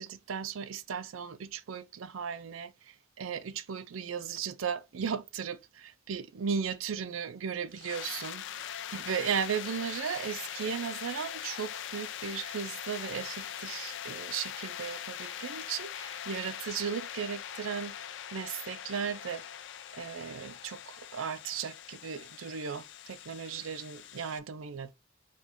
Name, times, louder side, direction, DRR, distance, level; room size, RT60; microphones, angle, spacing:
voice 1, 0.0-8.4 8.9-18.0 18.3-19.4 19.9-24.9, right 7 dB, 80° right, 0.5 m, -36 dB
sound 1, 7.7-24.4, left 10 dB, 65° left, 0.4 m, -42 dB
4.8 x 2.3 x 4.1 m
head